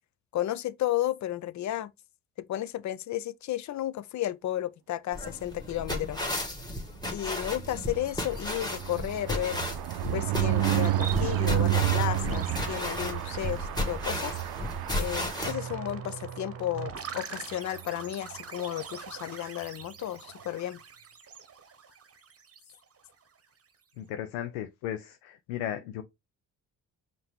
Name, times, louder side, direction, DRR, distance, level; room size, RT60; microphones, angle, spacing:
voice 1, 0.3-1.9 2.4-6.2 7.1-9.6 10.1-14.3 14.9-20.8, left 13 dB, 45° left, 0.5 m, -33 dB
sound 1, 5.1-15.5, left 1 dB, 10° left, 1.7 m, -34 dB
sound 2, 7.5-16.3 16.7-16.9 17.2-17.3 17.5-17.8, right 14 dB, 65° right, 0.6 m, -30 dB
sound 3, 10.4-23.1, right 6 dB, 35° right, 1.0 m, -42 dB
voice 2, 24.0-26.0, left 11 dB, 90° left, 0.6 m, -35 dB
5.4 x 2.7 x 3.5 m
hypercardioid pair, 50°, 42 cm